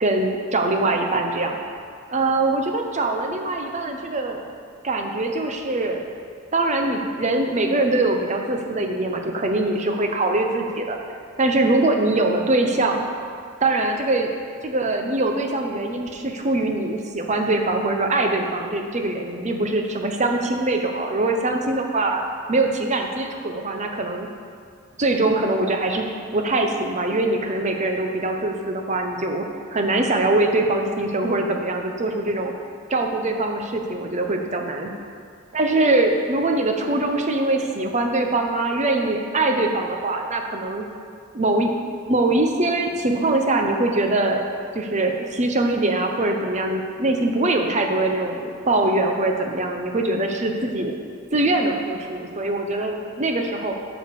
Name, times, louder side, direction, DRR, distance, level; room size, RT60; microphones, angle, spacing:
voice 1, 0.0-1.6 2.1-4.4 4.8-6.0 6.5-11.0 11.4-13.0 13.6-14.3 14.6-22.2 22.5-24.3 25.0-29.4 29.7-32.5 32.9-34.9 35.5-40.8 41.3-41.7 42.1-44.5 44.7-51.0 51.3-53.7, right 2 dB, 35° right, 3 dB, 0.8 m, -22 dB
9.1 x 5.1 x 6.8 m, 2.2 s
head